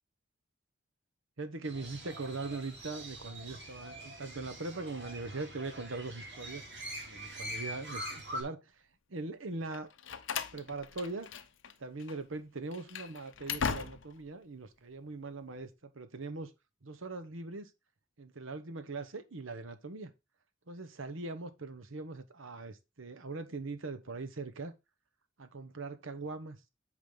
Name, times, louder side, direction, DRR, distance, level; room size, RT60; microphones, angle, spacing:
voice 1, 1.4-6.6 7.0-8.8 9.1-9.9 10.5-11.3 11.8-16.5 16.8-17.7 18.2-20.1 20.7-24.7 25.4-26.6, right 3 dB, 75° right, 1.1 m, -41 dB
Crow, 1.6-8.4, equal, 60° right, 2.9 m, -44 dB
Slam, 9.7-11.7 12.0-12.2 12.7-14.3, left 6 dB, 65° left, 0.8 m, -38 dB
8.6 x 5.1 x 3.8 m
head